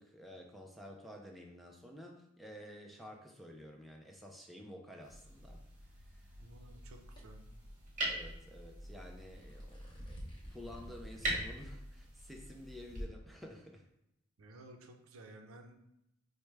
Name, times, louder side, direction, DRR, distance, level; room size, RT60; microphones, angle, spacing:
voice 1, 0.0-5.6 6.0-6.3 8.1-10.2 10.5-13.9, left 1 dB, ahead, 1 dB, 0.3 m, -51 dB
sound 1, 5.0-13.0, right 1 dB, 40° right, 1.0 m, -43 dB
voice 2, 6.4-7.4 14.4-15.8, right 1 dB, 70° right, 4 dB, 0.5 m, -54 dB
sound 2, 7.2-7.3 9.2-11.6 12.0-12.1 12.9-13.0, equal, 25° left, 0.9 m, -47 dB
4.5 x 2.1 x 3.2 m, 0.83 s
head